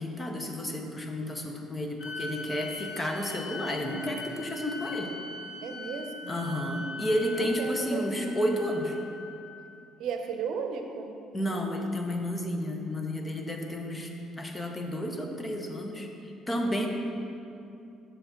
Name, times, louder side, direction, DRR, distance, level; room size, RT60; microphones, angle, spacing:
voice 1, 0.0-5.1 6.3-9.0 11.3-14.1 14.4-16.9, equal, 20° left, 2 dB, 0.7 m, -31 dB
sound 1, 2.0-9.5, left 2 dB, 80° left, 1.1 m, -41 dB
voice 2, 5.6-6.3 7.3-8.3 10.0-11.1 16.6-16.9, right 5 dB, 70° right, 4 dB, 0.7 m, -35 dB
7.6 x 6.5 x 3.8 m, 2.6 s
cardioid pair, 125°, 0 cm